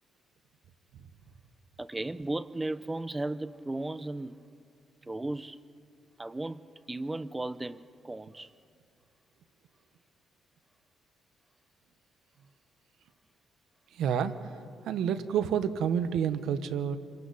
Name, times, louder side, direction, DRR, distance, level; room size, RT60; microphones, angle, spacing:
voice 1, 1.8-4.4 5.0-5.6 6.2-6.6 6.9-8.5, right 2 dB, 15° right, 0.6 m, -35 dB
voice 2, 13.9-14.3 14.8-17.0, right 8 dB, 80° right, 1.0 m, -29 dB
27.5 x 24.0 x 4.1 m
cardioid pair, 90°, 0 cm